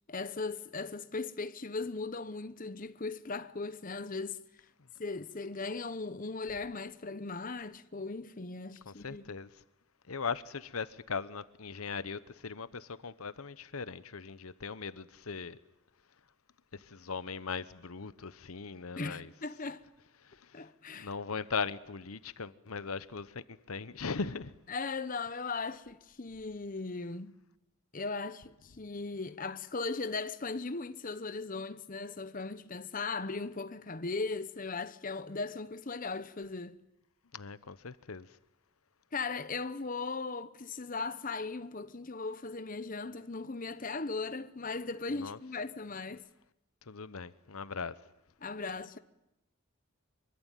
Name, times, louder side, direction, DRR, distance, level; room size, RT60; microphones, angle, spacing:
voice 1, 0.1-4.4 5.0-9.3 19.0-19.8 20.5-21.1 24.7-27.3 27.9-36.8 39.1-46.2 48.4-49.0, left 3 dB, 40° left, 0.9 m, -38 dB
voice 2, 8.9-9.5 10.1-15.6 16.7-19.3 20.2-20.7 20.9-24.5 37.3-38.3 45.1-45.4 46.9-48.0, left 5 dB, 85° left, 1.0 m, -39 dB
25.0 x 23.5 x 9.1 m
head